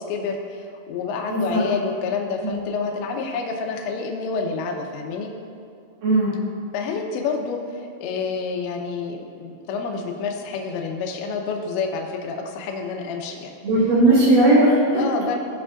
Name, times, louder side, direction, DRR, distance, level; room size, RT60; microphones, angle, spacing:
voice 1, 0.0-5.3 6.7-13.5 15.0-15.4, left 5 dB, 80° left, 1 dB, 2.7 m, -28 dB
voice 2, 1.3-1.6 2.4-2.5 6.0-6.3 13.6-15.0, right 1 dB, 60° right, -7 dB, 2.5 m, -17 dB
18.0 x 6.0 x 2.5 m, 2.5 s
omnidirectional pair, 5.9 m